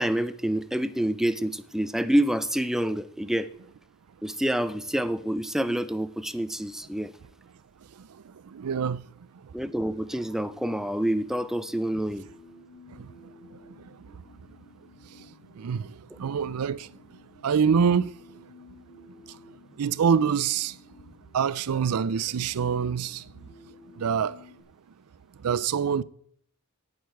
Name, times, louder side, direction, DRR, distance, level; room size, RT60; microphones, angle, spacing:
voice 1, 0.0-3.5 4.2-7.1 9.5-12.3, right 1 dB, ahead, 0.5 m, -27 dB
voice 2, 8.0-9.1 9.4-9.5 12.9-13.1 13.4-14.2 15.5-16.9 17.4-18.4 19.3-19.4 19.8-20.8 21.3-23.5 24.0-24.4 25.4-26.0, right 7 dB, 80° right, 0.5 m, -26 dB
sound 1, 9.8-24.6, left 3 dB, 75° left, 2.6 m, -54 dB
17.5 x 6.6 x 4.6 m
head